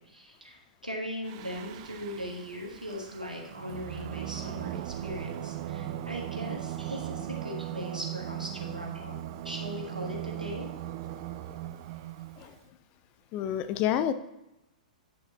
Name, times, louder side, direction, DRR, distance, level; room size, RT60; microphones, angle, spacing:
voice 1, 0.0-9.1 9.4-10.7, equal, 90° right, 0 dB, 1.6 m, -39 dB
Singing, 1.2-12.6, right 12 dB, 40° right, 0.4 m, -38 dB
voice 2, 13.3-14.1, left 10 dB, 30° left, 11 dB, 0.5 m, -27 dB
9.5 x 5.8 x 2.9 m, 0.90 s
figure-of-eight pair, 110°, 4 cm